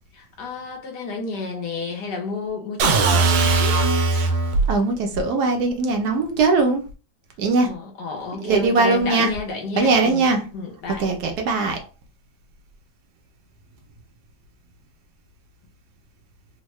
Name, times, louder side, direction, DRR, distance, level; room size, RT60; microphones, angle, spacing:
voice 1, 0.2-3.8 7.6-10.2 10.5-11.0, left 4 dB, 65° left, 1.4 m, -31 dB
sound 1, 2.8-4.7, right 3 dB, 90° right, 1.4 m, -19 dB
voice 2, 4.7-6.8 7.4-7.7 8.4-9.3 9.8-10.4 11.0-11.8, right 3 dB, 65° right, 1.1 m, -20 dB
3.6 x 2.1 x 3.0 m
omnidirectional pair, 2.0 m